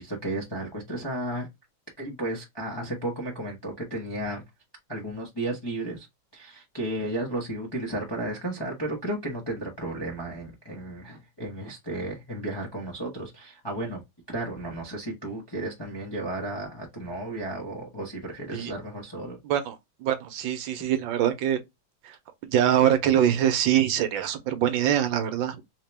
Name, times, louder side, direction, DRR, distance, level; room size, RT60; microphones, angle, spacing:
voice 1, 0.0-1.5 2.0-4.4 4.9-6.1 6.3-14.0 14.3-19.4, right 1 dB, 20° left, 0.6 m, -33 dB
voice 2, 19.4-19.7 20.0-21.6 22.0-22.2 22.4-25.6, right 10 dB, 75° right, 1.3 m, -24 dB
3.6 x 2.9 x 3.3 m
omnidirectional pair, 2.2 m